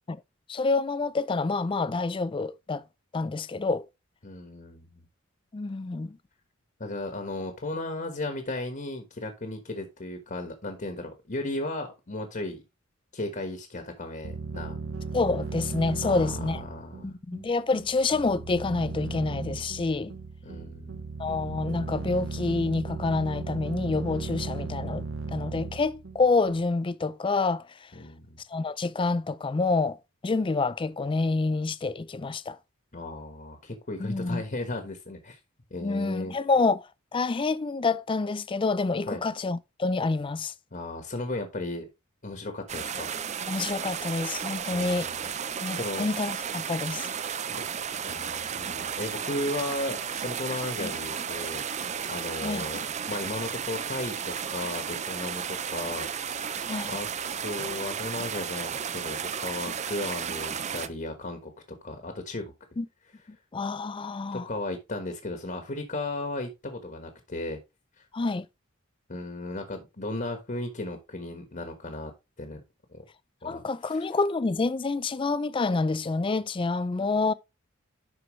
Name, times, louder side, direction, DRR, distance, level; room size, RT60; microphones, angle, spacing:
voice 1, 0.5-2.8 3.1-3.9 5.5-6.2 15.1-16.6 17.0-20.2 21.2-27.9 28.5-30.0 30.2-32.6 34.0-34.4 35.8-40.5 43.5-45.1 45.6-47.1 50.8-50.9 52.4-52.6 56.7-57.0 62.8-62.9 63.5-64.5 68.1-68.5 73.4-77.3, left 3 dB, 25° left, 0.4 m, -28 dB
voice 2, 4.2-5.1 6.8-12.6 13.1-14.8 16.0-17.1 20.4-21.0 27.9-28.4 32.9-35.4 35.7-36.3 39.1-39.2 40.7-41.9 42.2-43.1 44.7-45.3 45.7-46.1 47.5-47.6 48.0-57.1 57.4-61.5 61.8-62.5 64.3-67.6 69.1-72.1 72.4-72.6 72.9-73.0 73.4-74.1, left 2 dB, 40° left, 1.3 m, -35 dB
sound 1, 14.2-26.7, right 4 dB, 65° right, 0.8 m, -36 dB
sound 2, 42.7-60.9, right 7 dB, 35° right, 0.5 m, -33 dB
11.5 x 4.6 x 3.1 m
head